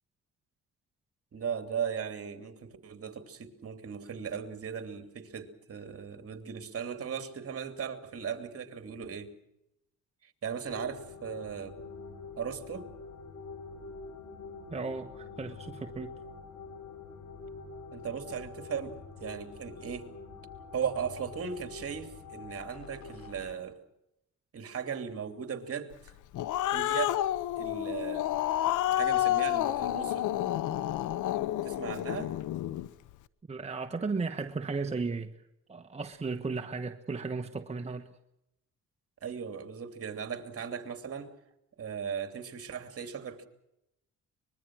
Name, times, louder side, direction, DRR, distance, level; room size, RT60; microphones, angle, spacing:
voice 1, 1.3-9.3 10.2-11.8 12.4-12.9 17.9-20.1 20.7-23.7 24.5-26.1 26.7-27.2 27.6-28.3 29.0-30.4 31.6-32.3 39.2-41.3 41.8-43.5, right 7 dB, 50° right, 3.0 m, -37 dB
sound 1, 10.7-23.5, left 4 dB, 65° left, 4.5 m, -46 dB
voice 2, 14.7-16.2 33.5-35.3 35.7-38.1, right 4 dB, 20° right, 1.3 m, -35 dB
Growling, 26.1-32.9, left 13 dB, 80° left, 0.9 m, -30 dB
24.5 x 21.5 x 6.2 m
cardioid pair, 90°, 30 cm